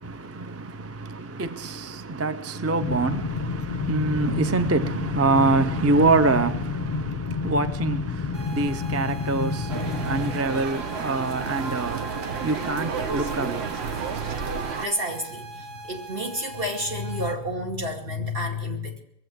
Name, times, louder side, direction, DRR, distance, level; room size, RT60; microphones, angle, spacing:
voice 1, 0.0-14.4, right 3 dB, 20° right, 0.5 m, -26 dB
sound 1, 2.8-10.4, left 5 dB, 35° left, 0.7 m, -30 dB
sound 2, 8.3-17.3, equal, 45° right, 2.1 m, -42 dB
sound 3, 9.7-14.9, right 6 dB, 85° right, 1.2 m, -31 dB
voice 2, 14.4-19.0, left 1 dB, 65° right, 2.7 m, -30 dB
22.0 x 7.8 x 7.8 m
omnidirectional pair, 1.0 m